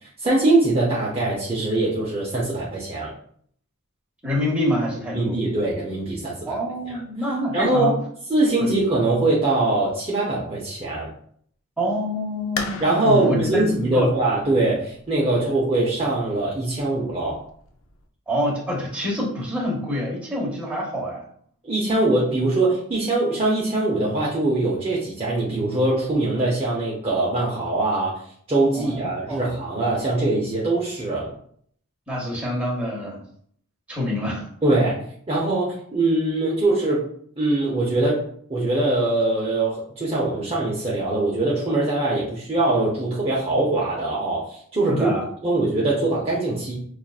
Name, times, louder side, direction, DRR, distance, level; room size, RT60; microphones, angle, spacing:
voice 1, 0.2-3.1 5.1-6.6 6.9-7.0 7.5-7.9 8.3-11.1 12.8-17.4 21.6-28.2 28.5-31.3 34.6-37.1 37.4-38.2 38.5-45.1 45.4-46.8, right 2 dB, 25° right, -5 dB, 0.6 m, -22 dB
voice 2, 4.2-5.4 6.4-7.9 8.6-8.8 11.8-14.1 18.3-21.2 28.7-29.4 32.1-33.2 33.9-34.5 44.9-45.2, left 1 dB, 5° right, -5 dB, 1.1 m, -26 dB
sound 1, 12.6-18.0, left 4 dB, 60° left, 0.5 m, -38 dB
5.5 x 2.4 x 2.3 m, 0.62 s
head